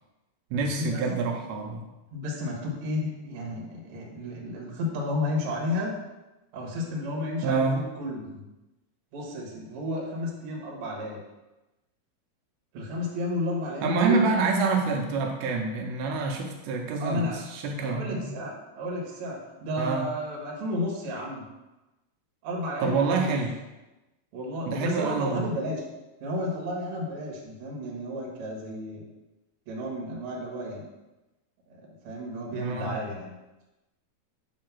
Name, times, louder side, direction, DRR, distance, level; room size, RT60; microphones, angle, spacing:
voice 1, 0.5-1.8 7.4-7.8 13.8-18.3 19.8-20.1 22.8-23.5 24.7-25.5 32.5-33.0, right 4 dB, 80° right, 1 dB, 2.5 m, -27 dB
voice 2, 2.1-5.9 6.5-8.4 9.1-11.2 12.7-14.2 17.0-17.4 17.8-21.4 22.4-23.4 24.3-25.8 26.2-29.0 29.7-30.8 32.0-33.3, left 1 dB, 55° right, -2 dB, 1.6 m, -32 dB
7.5 x 2.9 x 5.9 m, 1.0 s
omnidirectional pair, 4.5 m